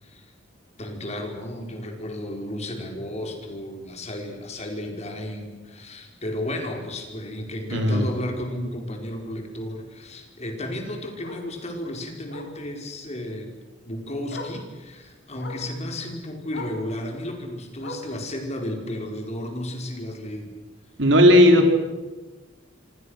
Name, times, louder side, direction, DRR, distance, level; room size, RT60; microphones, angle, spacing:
voice 1, 0.8-13.5 13.9-20.5, left 1 dB, 35° left, 3 dB, 4.7 m, -33 dB
Bark, 4.8-5.0 5.4-5.5 5.8-5.9 6.2-6.3 7.7-7.8 10.3-10.4 11.2-11.5 12.3-12.6 13.8-13.9 14.3-14.6 15.4-15.7 16.5-16.8 17.8-18.2 19.2-19.3, left 2 dB, 60° left, 3.6 m, -38 dB
voice 2, 7.7-8.0 21.0-21.7, left 1 dB, 70° right, 4 dB, 4.0 m, -15 dB
27.0 x 25.5 x 6.5 m, 1.2 s
head